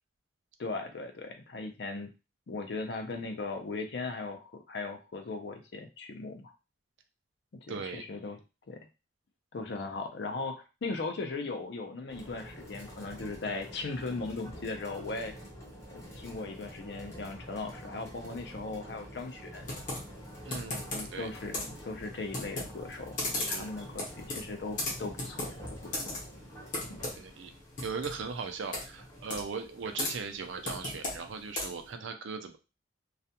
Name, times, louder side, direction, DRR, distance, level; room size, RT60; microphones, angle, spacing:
voice 1, 0.6-2.1 2.5-6.5 7.7-8.4 8.7-8.8 9.5-15.3 15.9-19.7 20.9-25.5 25.8-26.1, left 3 dB, 60° left, 5 dB, 0.5 m, -38 dB
voice 2, 7.7-8.0 20.4-21.3 23.4-23.7 27.1-27.5 27.8-32.6, right 5 dB, 80° right, 7 dB, 0.4 m, -39 dB
sound 1, 12.1-30.0, equal, 15° left, 0.6 m, -48 dB
Computer keyboard, 19.6-31.9, left 2 dB, 45° left, 0.8 m, -38 dB
2.4 x 2.1 x 2.8 m, 0.29 s
head